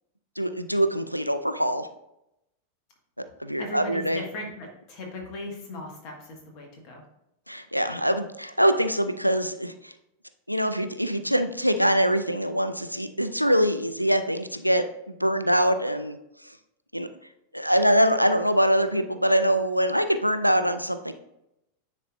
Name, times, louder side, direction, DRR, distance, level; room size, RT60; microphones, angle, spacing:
voice 1, 0.4-1.9 3.4-4.2 7.5-9.9 10.5-16.2 16.9-17.1 17.5-21.1, equal, 90° right, 9 dB, 0.4 m, -24 dB
voice 2, 3.6-7.0, left 1 dB, 40° left, 1 dB, 1.7 m, -38 dB
9.8 x 4.2 x 2.6 m, 0.84 s
figure-of-eight pair, 90°, 0 cm